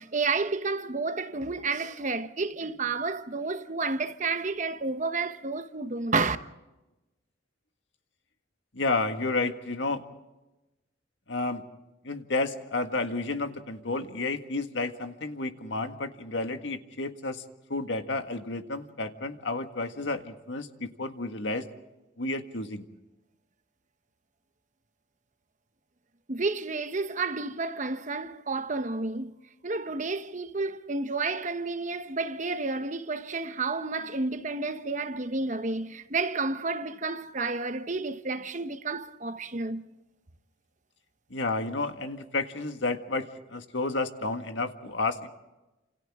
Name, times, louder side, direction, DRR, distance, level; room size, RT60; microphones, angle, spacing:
voice 1, 0.0-6.4 26.3-29.3 29.6-39.8, right 3 dB, 40° right, 1.1 m, -31 dB
voice 2, 8.7-10.0 11.3-11.6 12.0-17.4 17.7-21.7 22.2-22.8 41.3-45.3, left 3 dB, 75° left, 1.8 m, -31 dB
29.5 x 27.5 x 3.7 m
head